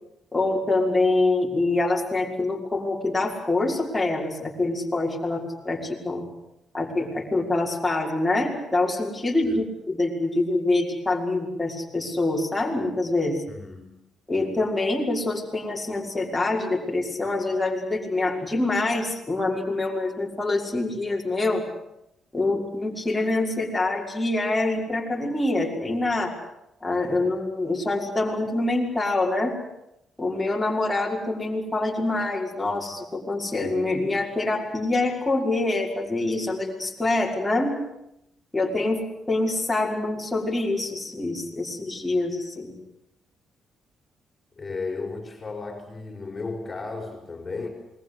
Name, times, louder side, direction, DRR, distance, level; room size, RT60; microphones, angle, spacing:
voice 1, 0.3-6.2 6.7-13.4 14.3-21.6 22.3-26.3 26.8-29.6 30.2-37.7 38.5-42.7, left 2 dB, 10° left, -2 dB, 5.7 m, -25 dB
voice 2, 13.5-13.9 44.6-47.7, left 3 dB, 25° left, 2 dB, 5.4 m, -34 dB
28.0 x 21.5 x 8.3 m, 0.85 s
cardioid pair, 90°, 0 cm